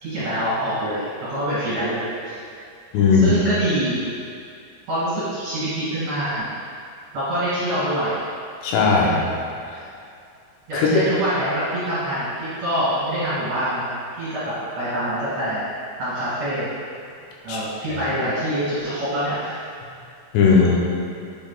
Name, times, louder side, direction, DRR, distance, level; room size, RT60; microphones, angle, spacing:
voice 1, 0.0-2.4 3.1-4.0 4.9-6.5 7.1-8.2 10.7-15.6 16.0-16.7 17.4-19.6, right 1 dB, 55° right, -11 dB, 2.1 m, -25 dB
voice 2, 2.9-3.4 8.6-9.3 10.7-10.9 17.5-17.6 20.3-20.8, left 5 dB, 80° left, -3 dB, 3.0 m, -17 dB
8.7 x 6.0 x 2.3 m, 2.5 s
omnidirectional pair, 4.9 m